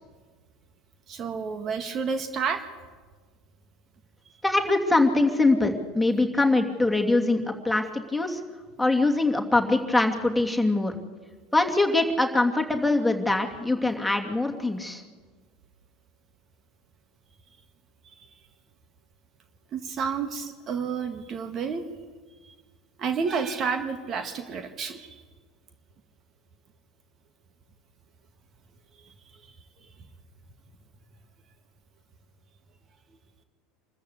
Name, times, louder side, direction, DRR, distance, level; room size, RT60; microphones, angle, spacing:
voice 1, 1.1-2.6 18.0-18.3 19.7-21.9 22.4-22.5 23.0-25.2, right 5 dB, 40° right, 7 dB, 1.8 m, -30 dB
voice 2, 4.4-8.4 8.8-10.9 11.5-15.0, left 2 dB, 5° left, 2 dB, 2.8 m, -23 dB
26.5 x 14.0 x 8.3 m, 1.4 s
figure-of-eight pair, 75°, 0 cm